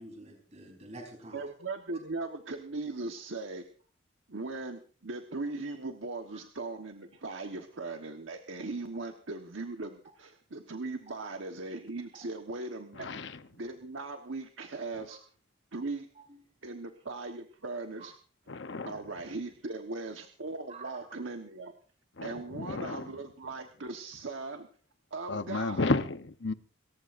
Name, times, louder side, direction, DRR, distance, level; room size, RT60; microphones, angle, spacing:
voice 1, 0.0-1.4 6.3-6.4 11.1-11.2 12.1-12.2 16.3-16.4 20.7-20.9, right 2 dB, 35° right, 4.1 m, -48 dB
voice 2, 1.3-3.6 4.3-13.1 13.6-15.2 15.7-16.1 16.6-18.1 18.8-21.7 22.2-24.7 25.1-25.9, right 3 dB, 85° right, 1.3 m, -39 dB
voice 3, 13.0-13.3 18.5-18.9 22.2-23.1 25.3-26.5, left 3 dB, 70° left, 0.9 m, -32 dB
28.0 x 14.5 x 2.6 m
head